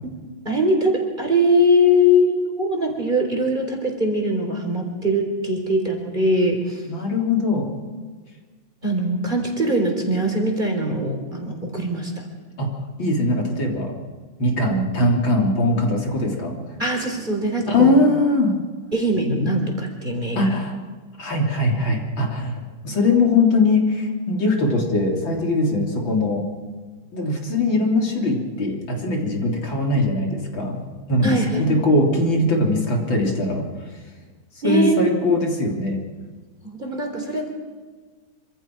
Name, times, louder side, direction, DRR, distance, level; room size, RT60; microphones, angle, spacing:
voice 1, 0.4-6.8 8.8-12.2 16.8-17.9 18.9-20.5 31.2-31.7 34.6-34.9 36.6-37.5, equal, 20° right, 2 dB, 4.1 m, -21 dB
voice 2, 6.9-7.7 12.6-12.7 13.0-13.9 14.4-16.7 17.7-18.6 20.4-20.8 21.2-26.5 27.1-33.6 34.6-36.0, left 2 dB, 70° left, 0 dB, 4.3 m, -21 dB
26.5 x 26.0 x 4.8 m, 1.5 s
omnidirectional pair, 2.2 m